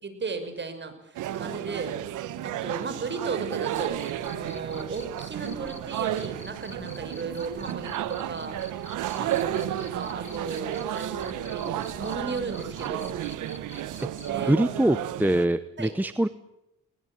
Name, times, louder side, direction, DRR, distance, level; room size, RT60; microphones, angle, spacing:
voice 1, 0.0-2.0 2.4-13.1 14.3-14.7 15.8-15.9, right 4 dB, 35° right, 9 dB, 5.9 m, -35 dB
sound 1, 1.1-15.5, right 12 dB, 85° right, 1.4 m, -33 dB
Cricket, 3.7-14.4, left 2 dB, 20° left, 3.6 m, -48 dB
voice 2, 14.5-16.3, right 1 dB, 5° right, 13 dB, 1.0 m, -23 dB
21.0 x 20.0 x 8.8 m, 0.85 s
cardioid pair, 90°, 30 cm